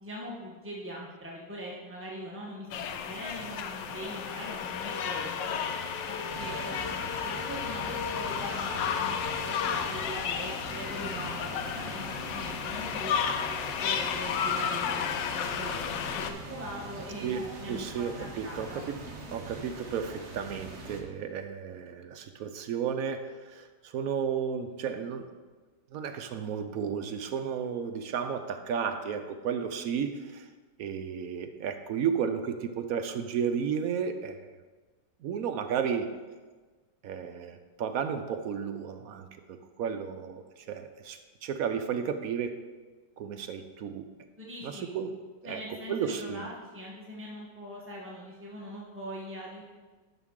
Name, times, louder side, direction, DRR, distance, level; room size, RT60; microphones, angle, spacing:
voice 1, 0.0-5.7 6.1-13.2 13.8-18.8 44.4-44.9 45.4-49.6, equal, 10° right, -4 dB, 0.6 m, -42 dB
sound 1, 2.7-16.3, left 7 dB, 90° left, 1.3 m, -32 dB
sound 2, 6.3-21.0, right 2 dB, 45° right, 1.2 m, -43 dB
voice 2, 17.7-19.0 19.3-25.3 25.9-30.5 30.8-34.5 35.2-36.1 37.0-42.6 43.2-44.0 44.6-45.1 45.4-45.6 45.9-46.5, right 7 dB, 70° right, 7 dB, 0.9 m, -33 dB
11.0 x 5.8 x 3.7 m, 1.3 s
omnidirectional pair, 1.9 m